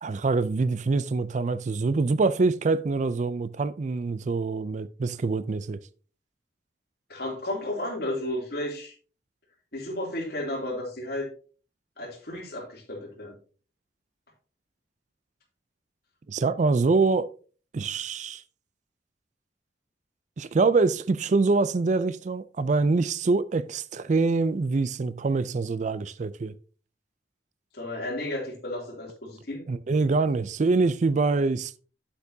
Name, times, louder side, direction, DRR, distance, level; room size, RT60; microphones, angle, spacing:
voice 1, 0.0-5.8 16.3-17.3 17.7-18.4 20.4-26.5 29.7-31.8, right 3 dB, 45° right, 0.4 m, -25 dB
voice 2, 7.1-8.9 9.7-11.3 12.0-13.4 27.7-29.6, left 1 dB, 60° left, 2.9 m, -33 dB
9.0 x 8.1 x 2.7 m
head